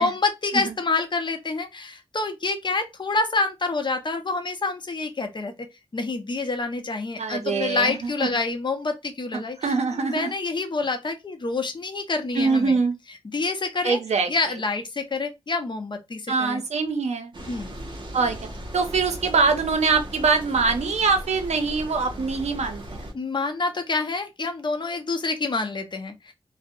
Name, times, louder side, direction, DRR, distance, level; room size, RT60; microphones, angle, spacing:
voice 1, 0.0-5.5 5.9-12.8 13.3-14.0 14.3-16.6 17.5-17.7 23.1-26.3, left 3 dB, 45° left, 0.6 m, -27 dB
voice 2, 7.2-8.3 9.3-10.3 12.3-12.9 13.8-14.3 16.3-17.3 18.1-18.4 18.7-23.1, right 4 dB, 85° right, 0.5 m, -23 dB
sound 1, 17.3-23.1, right 1 dB, 45° right, 0.7 m, -37 dB
2.4 x 2.0 x 2.6 m
wide cardioid pair, 70°, 11 cm